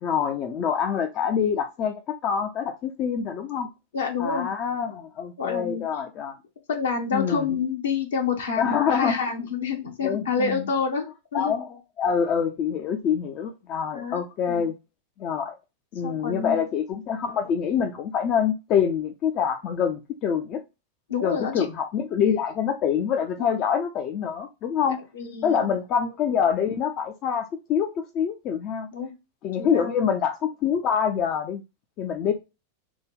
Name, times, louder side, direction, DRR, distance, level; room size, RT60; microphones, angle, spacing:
voice 1, 0.0-3.7 4.2-6.4 7.1-7.5 8.6-9.2 10.0-10.7 11.3-11.7 12.0-14.7 15.2-15.5 15.9-20.6 21.2-25.0 25.4-28.9 29.4-31.6 32.0-32.3, left 7 dB, 35° left, 0.4 m, -25 dB
voice 2, 3.9-4.5 5.4-5.8 6.7-11.1 11.3-11.5 13.9-14.2 14.5-14.7 16.0-16.6 21.1-21.7 23.4-23.5 25.1-25.7 28.9-29.1 29.6-30.1, left 5 dB, 65° left, 0.8 m, -28 dB
3.4 x 2.1 x 3.4 m
figure-of-eight pair, 90°, 0 cm